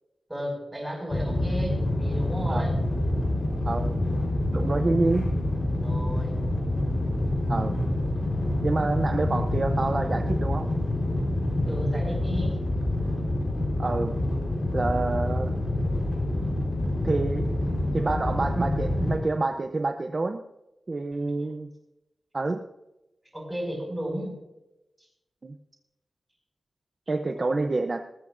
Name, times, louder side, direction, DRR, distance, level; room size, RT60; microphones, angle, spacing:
voice 1, 0.3-2.7 5.8-6.4 11.6-12.6 21.1-21.5 23.3-24.3 27.4-27.5, equal, 10° right, -1 dB, 6.0 m, -34 dB
sound 1, 1.1-19.2, left 1 dB, 45° left, 4.1 m, -27 dB
voice 2, 3.6-4.0 4.5-5.3 7.5-7.8 8.6-10.7 13.8-14.2 14.7-15.5 17.0-17.5 17.9-20.4 20.9-21.7 22.3-22.6 25.4-25.6 27.1-28.0, right 3 dB, 35° right, 6 dB, 0.7 m, -27 dB
19.0 x 14.5 x 2.6 m, 0.95 s
wide cardioid pair, 150°, 0 cm